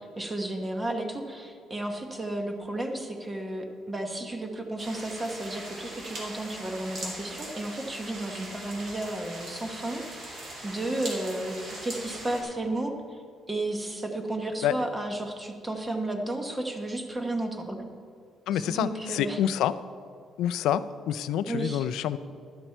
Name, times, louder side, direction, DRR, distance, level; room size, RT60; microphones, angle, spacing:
voice 1, 0.0-13.2 13.5-17.9 18.5-19.4 21.5-21.9, right 1 dB, 15° right, 4 dB, 0.9 m, -33 dB
sound 1, 4.8-12.4, right 1 dB, 45° right, 2.6 m, -40 dB
voice 2, 18.5-19.7 20.4-22.2, left 10 dB, 85° left, 14 dB, 0.4 m, -27 dB
11.5 x 10.0 x 4.5 m, 2.4 s
cardioid pair, 170°, 0 cm